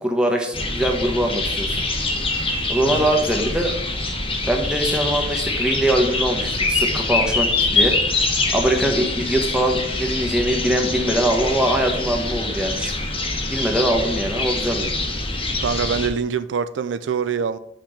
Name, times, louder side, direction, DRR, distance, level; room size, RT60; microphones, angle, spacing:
voice 1, 0.0-1.8 2.7-3.7 4.5-8.3 8.5-12.9 13.4-14.9, right 1 dB, 5° right, 1 dB, 1.1 m, -22 dB
sound 1, 0.5-16.1, left 3 dB, 30° left, 1.2 m, -24 dB
voice 2, 15.6-17.6, right 6 dB, 80° right, 13 dB, 0.4 m, -25 dB
6.0 x 4.2 x 6.4 m, 0.77 s
head